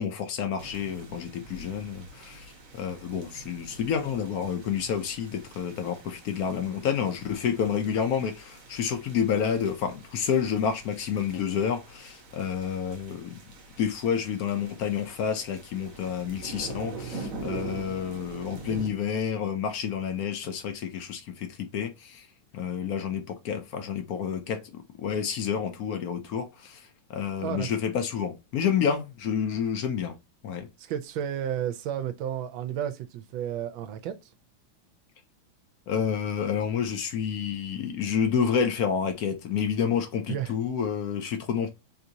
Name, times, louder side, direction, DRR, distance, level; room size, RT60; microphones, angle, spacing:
voice 1, 0.0-13.4 13.8-22.2 22.5-26.8 27.1-30.1 30.4-30.7 35.9-41.7, left 7 dB, 65° left, 0.9 m, -29 dB
sound 1, 0.6-18.9, right 3 dB, 50° right, 1.2 m, -44 dB
voice 2, 30.8-34.2 40.3-40.5, right 10 dB, 80° right, 1.3 m, -32 dB
3.9 x 2.7 x 2.7 m
omnidirectional pair, 2.2 m